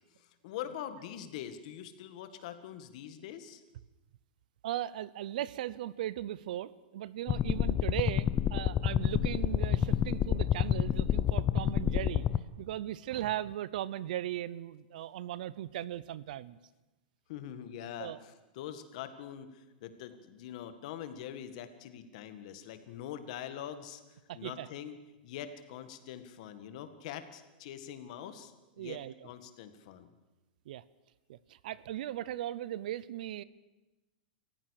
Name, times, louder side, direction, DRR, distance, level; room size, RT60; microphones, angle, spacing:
voice 1, 0.2-3.6 17.3-25.0 25.2-28.5 28.8-29.0 29.2-30.1, left 10 dB, 50° left, 10 dB, 1.9 m, -44 dB
voice 2, 4.6-12.2 12.6-16.6 18.0-18.2 24.3-24.7 28.8-29.1 30.7-30.8 31.3-33.4, right 13 dB, 60° right, 20 dB, 0.7 m, -38 dB
sound 1, 7.3-12.4, left 10 dB, 20° left, 0.6 m, -29 dB
27.0 x 15.0 x 6.6 m, 1.1 s
supercardioid pair, 165°, 5 cm